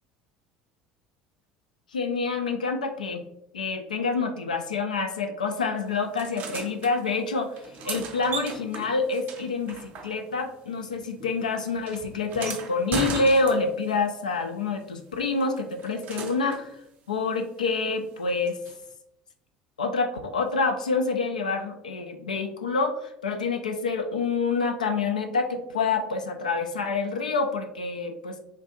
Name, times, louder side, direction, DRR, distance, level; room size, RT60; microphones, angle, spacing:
voice 1, 1.9-3.2 3.5-7.6 7.8-16.8 17.1-18.6 19.8-28.4, left 4 dB, 80° left, 5 dB, 0.3 m, -27 dB
sound 1, 6.2-6.9 7.5-10.5 10.8-13.9 15.4-16.7 18.6-18.7, right 4 dB, 45° right, 0.5 m, -37 dB
3.2 x 2.4 x 2.9 m, 0.80 s
figure-of-eight pair, 65°, 4 cm